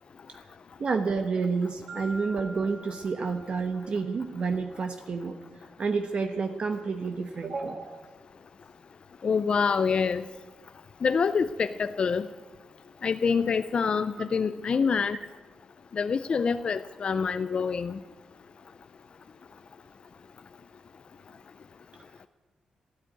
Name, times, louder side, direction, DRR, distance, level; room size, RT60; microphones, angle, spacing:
voice 1, 0.8-5.4 5.8-8.1 14.2-14.3, right 4 dB, 50° right, 6 dB, 1.0 m, -29 dB
Marimba xylophone, 1.9-4.1, right 1 dB, 85° right, 3.8 m, -45 dB
voice 2, 9.2-10.2 11.0-12.2 13.0-15.2 16.0-17.9, left 5 dB, 45° left, 11 dB, 0.5 m, -26 dB
13.0 x 12.5 x 9.1 m, 1.4 s
cardioid pair, 120°, 2 cm